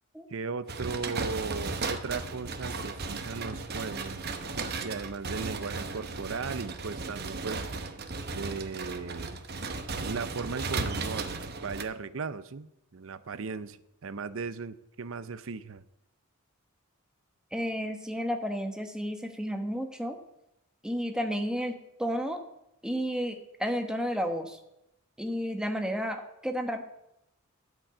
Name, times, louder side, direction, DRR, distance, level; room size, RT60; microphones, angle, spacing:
voice 1, 0.3-4.3 4.8-7.6 8.3-9.3 9.9-11.3 11.6-15.8, right 4 dB, 65° right, 15 dB, 0.6 m, -37 dB
sound 1, 0.7-11.8, right 3 dB, 45° right, 0.9 m, -35 dB
voice 2, 17.5-20.2 20.8-22.4 22.8-24.6 25.2-26.8, equal, 5° right, 5 dB, 1.1 m, -32 dB
12.5 x 5.3 x 8.4 m, 0.85 s
head